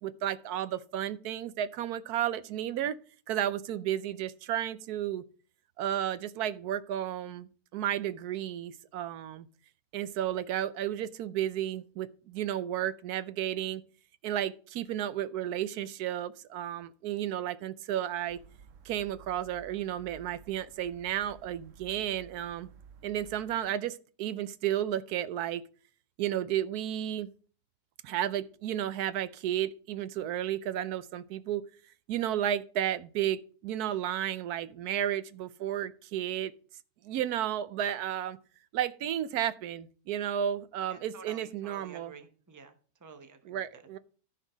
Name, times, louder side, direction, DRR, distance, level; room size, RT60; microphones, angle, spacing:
voice 1, 0.0-3.0 3.3-5.2 5.8-9.5 9.9-13.8 14.2-18.4 18.8-22.7 23.0-25.6 26.2-27.3 28.0-31.6 32.1-36.5 37.0-38.4 38.7-42.1 43.5-44.0, right 11 dB, 80° right, 1.2 m, -33 dB
sound 1, 18.3-23.7, right 7 dB, 60° right, 1.1 m, -54 dB
voice 2, 40.9-42.7 43.0-43.8, right 5 dB, 15° right, 0.9 m, -50 dB
13.5 x 4.6 x 5.0 m
omnidirectional pair, 1.6 m